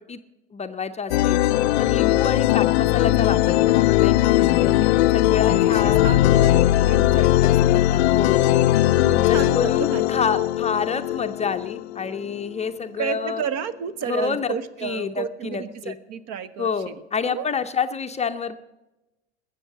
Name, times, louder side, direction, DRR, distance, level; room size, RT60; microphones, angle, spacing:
voice 1, 0.5-1.4 1.8-4.7 5.1-6.2 7.1-8.5 9.1-13.4 14.1-14.6 14.8-16.0 16.6-18.6, left 6 dB, 20° left, 8 dB, 0.6 m, -28 dB
sound 1, 1.1-12.5, left 15 dB, 65° left, 0.5 m, -19 dB
voice 2, 4.7-7.9 8.4-10.2 13.0-17.0 17.3-17.5, right 8 dB, 50° right, 16 dB, 1.0 m, -32 dB
20.5 x 7.5 x 7.2 m, 1.0 s
figure-of-eight pair, 75°, 35 cm